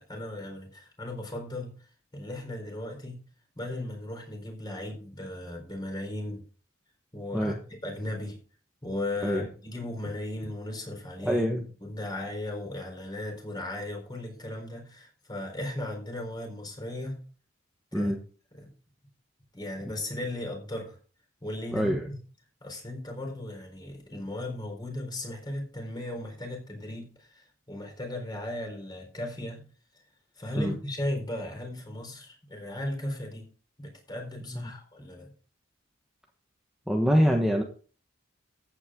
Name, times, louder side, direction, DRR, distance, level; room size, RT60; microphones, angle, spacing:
voice 1, 0.0-1.7 2.1-3.2 3.6-6.4 7.1-7.6 7.8-8.4 8.8-17.2 17.9-18.1 18.5-18.7 19.5-21.0 21.4-22.2 22.6-29.6 30.4-33.5 33.8-35.3, left 1 dB, 20° left, 3 dB, 4.2 m, -36 dB
voice 2, 11.2-11.6 17.9-18.2 21.7-22.1 30.6-30.7 34.5-34.7 36.9-37.6, equal, ahead, 1 dB, 1.3 m, -25 dB
14.5 x 9.0 x 3.7 m, 0.39 s
head